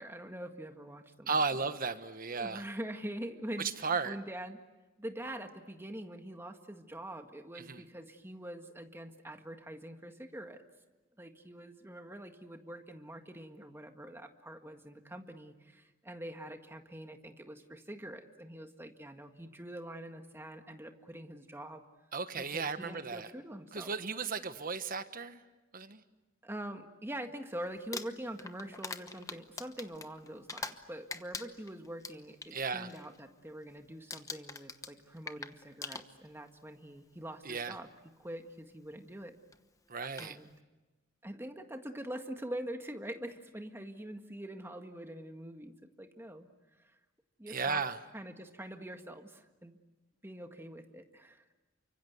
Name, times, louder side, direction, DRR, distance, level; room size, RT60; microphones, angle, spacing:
voice 1, 0.0-1.6 2.4-4.6 5.0-10.6 11.2-21.8 22.4-24.0 26.4-37.9 38.2-39.3 40.2-40.5 41.2-46.5 46.8-47.0 47.4-49.8 50.2-51.4, right 1 dB, 10° right, 5 dB, 1.8 m, -44 dB
voice 2, 1.3-2.6 3.6-4.2 7.6-7.8 22.1-23.3 23.7-25.4 25.7-26.0 32.5-32.9 37.4-37.8 39.9-40.4 47.5-48.0, right 5 dB, 45° right, 10 dB, 1.3 m, -35 dB
Crumpling crinkling, 27.8-30.8 31.1-32.5 32.9-33.2 33.5-33.8 34.1-36.5 37.4-37.5 39.5-39.6 40.0-40.3, left 4 dB, 15° left, 1.0 m, -43 dB
29.5 x 25.0 x 8.1 m, 1.1 s
head